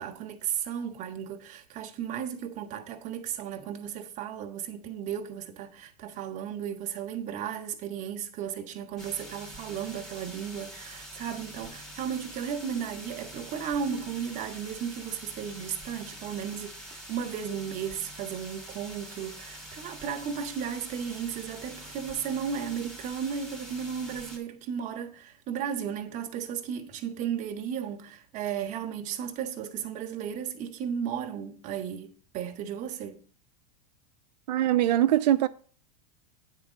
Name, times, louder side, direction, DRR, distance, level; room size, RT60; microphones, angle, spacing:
voice 1, 0.0-33.2, right 8 dB, 35° right, 1.2 m, -35 dB
sound 1, 9.0-24.4, right 1 dB, ahead, 2.2 m, -45 dB
voice 2, 34.5-35.5, right 12 dB, 85° right, 0.5 m, -22 dB
9.4 x 3.7 x 6.1 m
supercardioid pair, 135°, 21 cm